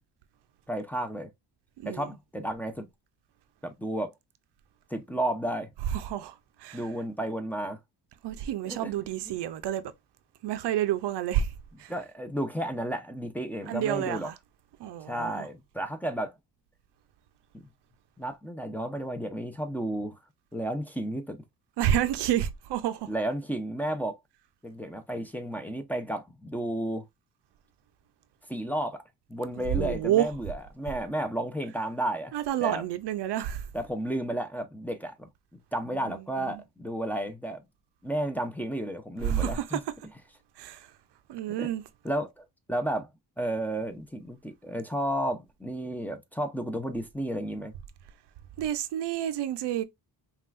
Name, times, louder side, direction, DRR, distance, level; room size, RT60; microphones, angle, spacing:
voice 1, 0.7-1.3 1.8-2.9 3.6-4.1 4.9-5.7 6.7-7.8 8.7-8.9 9.3-9.4 11.9-14.3 15.0-16.3 17.5-17.6 18.2-20.2 20.5-21.4 23.1-24.2 24.6-27.0 28.5-29.0 29.3-32.3 32.6-32.8 33.7-35.3 35.7-37.6 38.0-39.8 41.6-41.7 42.0-43.1 43.4-47.7, right 1 dB, 5° left, 0.6 m, -32 dB
voice 2, 1.8-2.1 5.9-6.3 6.6-6.8 8.2-9.8 10.4-11.5 11.8-11.9 13.7-14.3 14.8-15.5 21.8-23.1 29.6-30.3 32.3-33.6 36.0-36.6 39.2-39.8 40.6-40.9 41.3-41.8 48.6-49.8, right 11 dB, 85° right, 0.6 m, -29 dB
5.4 x 2.5 x 2.5 m
cardioid pair, 95°, 40 cm